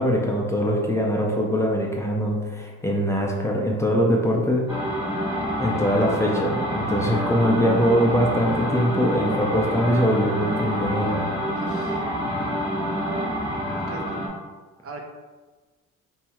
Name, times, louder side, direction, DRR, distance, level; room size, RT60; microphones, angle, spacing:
voice 1, 0.0-4.6 5.6-11.2, equal, 10° left, -2 dB, 0.4 m, -22 dB
sound 1, 4.7-14.3, equal, 15° right, 0.9 m, -27 dB
voice 2, 11.5-12.0 13.7-14.2 14.8-15.0, right 3 dB, 50° right, 2 dB, 0.5 m, -39 dB
3.0 x 2.3 x 2.8 m, 1.3 s
cardioid pair, 90°, 30 cm